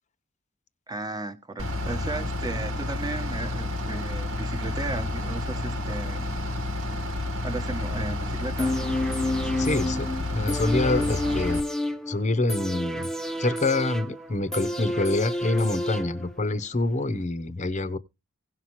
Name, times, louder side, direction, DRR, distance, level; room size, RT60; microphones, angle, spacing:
voice 1, 0.9-6.3 6.6-6.7 7.4-8.8, right 2 dB, 20° right, 1.1 m, -35 dB
Bus / Idling, 1.6-11.6, left 2 dB, 65° right, 1.5 m, -30 dB
sound 1, 8.6-16.6 16.9-17.0, left 1 dB, ahead, 0.7 m, -30 dB
voice 2, 9.6-11.6 12.1-13.1 13.4-18.0, left 2 dB, 35° left, 0.8 m, -26 dB
17.0 x 5.7 x 3.0 m
head